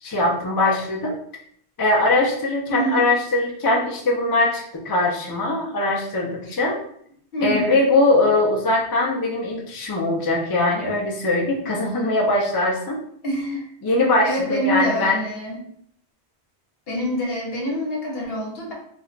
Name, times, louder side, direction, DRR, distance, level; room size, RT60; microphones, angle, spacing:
voice 1, 0.0-1.1 1.8-6.8 7.4-13.0 13.8-15.2, left 2 dB, 35° left, -2 dB, 0.3 m, -21 dB
voice 2, 2.7-3.1 6.5-6.6 7.3-7.8 13.2-13.7 14.2-15.6 16.9-18.7, equal, 65° left, -1 dB, 1.0 m, -26 dB
2.4 x 2.1 x 3.8 m, 0.67 s
omnidirectional pair, 1.1 m